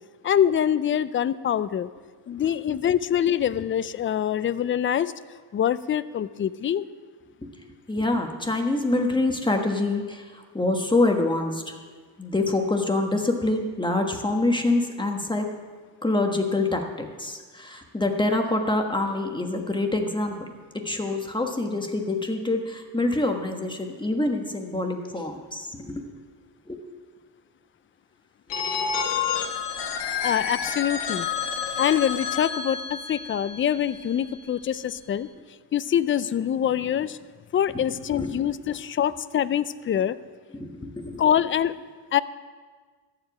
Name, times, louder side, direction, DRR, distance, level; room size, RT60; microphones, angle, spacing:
voice 1, 0.2-1.9 2.3-5.1 5.5-6.8 30.0-31.3 31.8-35.3 35.7-37.2 37.5-40.2 41.2-41.8 42.1-42.2, left 9 dB, 30° left, 15 dB, 0.4 m, -24 dB
voice 2, 7.9-10.2 10.5-11.7 12.2-15.5 16.0-20.3 20.8-26.1 26.7-26.8 38.1-38.5 40.5-41.2, left 2 dB, 10° left, 3 dB, 1.3 m, -26 dB
Telephone, 28.5-34.3, left 6 dB, 90° left, 1.2 m, -30 dB
14.0 x 5.0 x 9.3 m, 1.5 s
cardioid pair, 100°, 41 cm